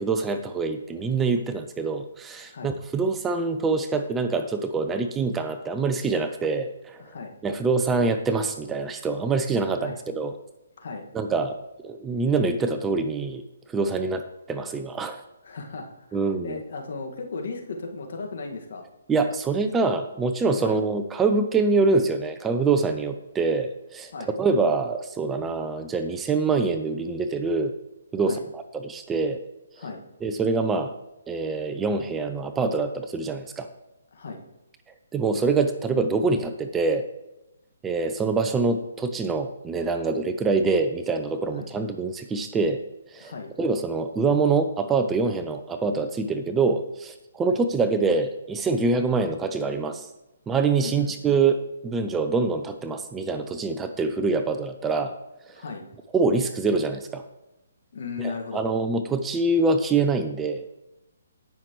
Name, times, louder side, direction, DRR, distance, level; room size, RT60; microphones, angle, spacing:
voice 1, 0.0-7.0 7.4-10.3 11.1-11.6 11.8-13.4 13.7-15.2 16.1-16.6 19.1-24.1 24.4-27.7 28.1-29.4 30.2-30.9 31.3-33.7 35.1-37.0 37.8-42.8 43.1-43.3 43.6-50.1 50.5-55.1 56.1-57.2 58.2-60.6, right 4 dB, 10° right, 8 dB, 0.5 m, -25 dB
voice 2, 2.4-2.7 7.0-7.3 9.7-10.2 10.8-11.1 15.4-18.8 20.6-20.8 24.1-24.4 28.2-28.4 29.8-30.0 34.1-34.4 41.5-41.7 43.2-43.5 47.5-47.6 50.8-51.1 55.5-55.9 57.9-58.7, left 4 dB, 60° left, 2 dB, 1.8 m, -36 dB
17.5 x 5.9 x 3.1 m, 0.96 s
hypercardioid pair, 145°, 0 cm